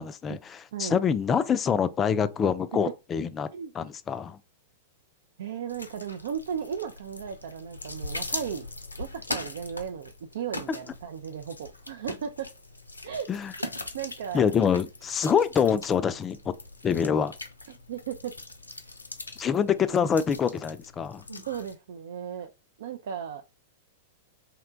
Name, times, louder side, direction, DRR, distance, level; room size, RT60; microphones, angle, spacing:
voice 1, 0.0-3.5 3.7-4.4 13.3-13.5 14.3-16.4 16.8-17.3 19.4-21.2, left 7 dB, 25° left, 0.4 m, -25 dB
voice 2, 5.4-8.6 9.0-12.5 13.0-13.3 13.9-14.5 17.9-18.3 21.5-22.5 22.8-23.4, right 8 dB, 65° right, 0.4 m, -35 dB
sound 1, 5.7-21.7, left 2 dB, 90° left, 0.5 m, -41 dB
2.8 x 2.2 x 3.8 m
figure-of-eight pair, 100°, 0 cm